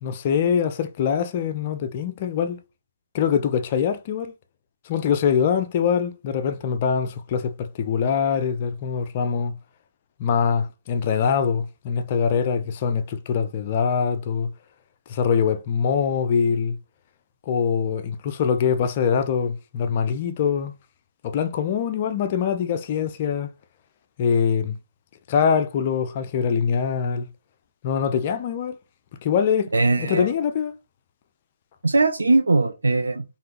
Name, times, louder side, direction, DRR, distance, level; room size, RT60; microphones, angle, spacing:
voice 1, 0.0-2.6 3.1-4.3 4.9-9.5 10.2-14.5 15.1-16.8 17.5-20.7 21.2-23.5 24.2-24.7 25.3-27.3 27.8-28.8 29.2-29.7 30.0-30.7, left 7 dB, 35° left, 0.4 m, -23 dB
voice 2, 29.7-30.3 31.8-33.2, right 3 dB, 70° right, 0.4 m, -20 dB
3.3 x 2.5 x 2.9 m
figure-of-eight pair, 135°, 0 cm